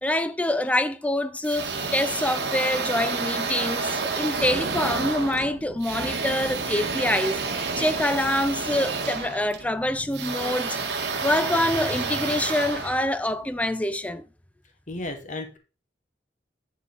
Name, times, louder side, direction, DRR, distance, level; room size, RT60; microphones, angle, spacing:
voice 1, 0.0-10.8 11.2-14.2, left 1 dB, 10° left, 0.5 m, -26 dB
sound 1, 1.4-13.6, right 4 dB, 75° right, 1.8 m, -30 dB
voice 2, 14.9-15.6, left 2 dB, 45° left, 1.4 m, -33 dB
9.6 x 4.6 x 4.0 m
head